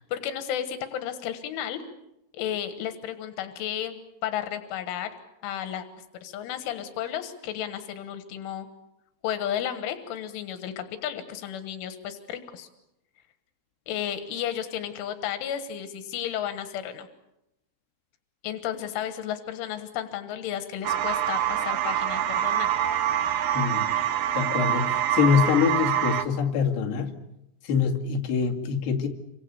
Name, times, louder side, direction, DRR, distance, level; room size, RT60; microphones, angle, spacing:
voice 1, 0.0-1.8 2.3-5.1 5.4-5.9 6.2-8.7 9.2-12.7 13.9-17.1 18.4-22.7, left 10 dB, 90° left, 9 dB, 3.9 m, -33 dB
sound 1, 20.8-26.2, right 10 dB, 70° right, 2.8 m, -25 dB
voice 2, 23.5-23.9 24.3-27.2 27.6-29.1, left 7 dB, 65° left, 0 dB, 4.3 m, -24 dB
29.0 x 25.0 x 6.9 m, 0.87 s
omnidirectional pair, 5.4 m